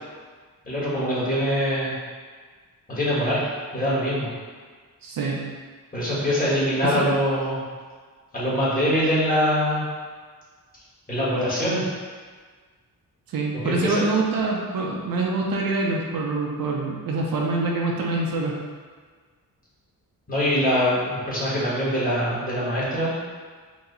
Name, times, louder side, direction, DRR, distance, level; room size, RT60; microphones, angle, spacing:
voice 1, 0.6-1.9 2.9-3.5 3.7-4.3 5.9-7.6 8.3-9.8 11.1-11.8 13.5-14.0 20.3-23.2, equal, 25° left, -8 dB, 1.4 m, -23 dB
voice 2, 5.0-5.4 6.8-7.1 13.3-18.5, right 3 dB, 65° right, -1 dB, 0.7 m, -25 dB
4.6 x 2.2 x 3.9 m, 1.5 s
wide cardioid pair, 125°, 36 cm